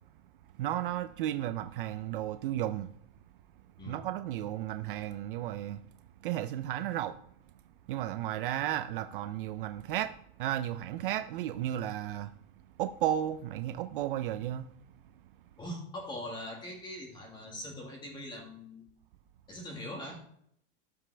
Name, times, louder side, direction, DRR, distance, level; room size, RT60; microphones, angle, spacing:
voice 1, 0.6-2.9 3.8-5.8 6.2-7.2 7.9-12.3 12.8-14.7, right 12 dB, 50° right, 0.5 m, -33 dB
voice 2, 15.6-18.9 19.5-20.3, left 1 dB, 10° left, 1.7 m, -42 dB
12.5 x 5.3 x 3.3 m
supercardioid pair, 170°, 36 cm